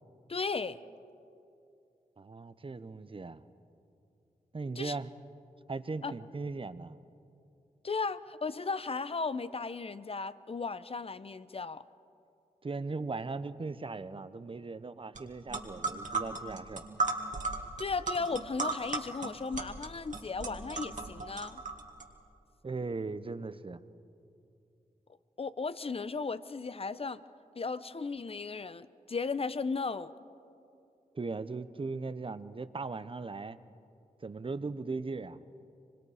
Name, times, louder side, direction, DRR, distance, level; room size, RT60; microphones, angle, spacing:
voice 1, 0.3-0.8 4.8-5.0 6.0-6.1 7.8-11.8 17.8-21.6 25.4-27.2 27.5-30.1, left 4 dB, 40° left, 15 dB, 0.7 m, -35 dB
voice 2, 2.2-3.4 4.5-5.1 5.7-7.0 12.6-16.8 22.6-23.8 31.1-33.6 34.2-35.4, right 3 dB, 35° right, 13 dB, 0.8 m, -38 dB
sound 1, 15.2-15.3 15.5-22.0, right 3 dB, 60° right, 2.3 m, -35 dB
25.0 x 22.5 x 5.0 m, 2.6 s
cardioid pair, 50°, 15 cm